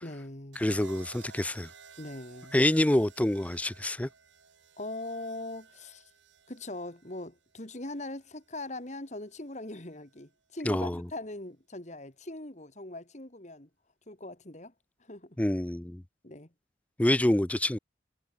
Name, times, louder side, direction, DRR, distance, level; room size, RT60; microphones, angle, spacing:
voice 1, 0.0-0.6 2.0-2.6 4.8-6.1 6.5-13.7 14.1-14.7 15.0-15.4 16.2-16.5, left 2 dB, 40° left, 2.6 m, -41 dB
sound 1, 0.5-8.7 9.9-10.3, right 5 dB, 90° right, 3.2 m, -55 dB
voice 2, 0.6-1.7 2.5-4.1 10.7-11.0 15.4-16.0 17.0-17.8, left 1 dB, 10° left, 0.4 m, -26 dB
head